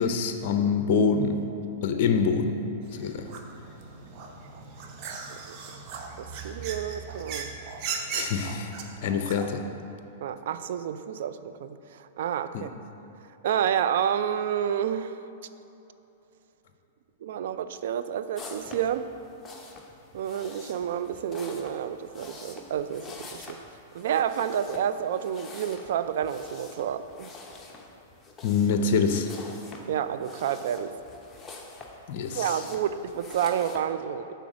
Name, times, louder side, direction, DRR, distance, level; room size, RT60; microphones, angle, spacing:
voice 1, 0.0-1.4 1.8-2.6 2.9-3.3 8.1-8.7 9.0-9.6 12.5-12.6 28.4-29.3 32.1-32.6, left 5 dB, 55° left, 6 dB, 0.5 m, -25 dB
sound 1, 2.8-9.5, right 5 dB, 45° right, 0.7 m, -38 dB
voice 2, 5.5-5.8 6.2-7.5 10.2-12.7 13.4-15.2 17.2-19.1 20.1-23.6 23.9-27.3 29.9-30.9 32.3-34.3, right 9 dB, 65° right, 12 dB, 0.3 m, -29 dB
sound 2, 18.3-33.8, left 3 dB, 15° left, 0.8 m, -46 dB
6.1 x 3.9 x 6.1 m, 2.9 s
hypercardioid pair, 120°, 0 cm